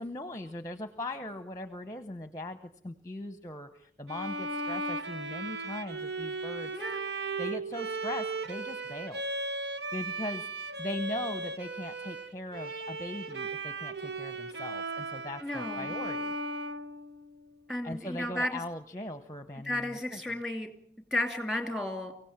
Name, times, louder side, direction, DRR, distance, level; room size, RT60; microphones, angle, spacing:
voice 1, 0.0-2.6 2.8-6.7 7.4-9.2 9.9-16.3 17.8-20.2, left 1 dB, 20° left, 10 dB, 0.8 m, -39 dB
Bowed string instrument, 4.1-17.5, right 2 dB, 80° right, 1.2 m, -36 dB
voice 2, 15.4-15.9 17.7-18.5 19.6-20.7 21.1-22.1, left 1 dB, 5° right, 6 dB, 2.7 m, -33 dB
24.0 x 16.5 x 8.8 m, 0.65 s
head